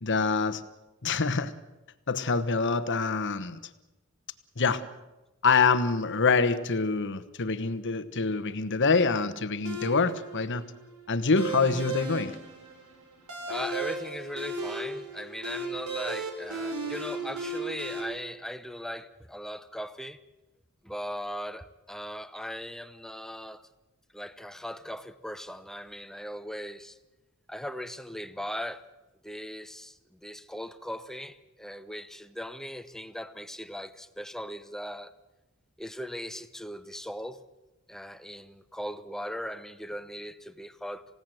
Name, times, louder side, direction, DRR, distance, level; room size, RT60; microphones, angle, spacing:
voice 1, 0.0-0.6 1.0-1.5 2.1-3.6 4.6-4.8 5.4-10.6 11.1-12.4, left 4 dB, 55° left, 1.2 m, -25 dB
sound 1, 9.6-18.0, right 2 dB, 85° right, 6.0 m, -36 dB
voice 2, 13.5-20.2 20.8-23.6 24.1-27.0 27.5-28.9 29.2-35.1 35.8-37.4 37.9-41.1, equal, ahead, 0.9 m, -39 dB
28.5 x 16.5 x 7.9 m
head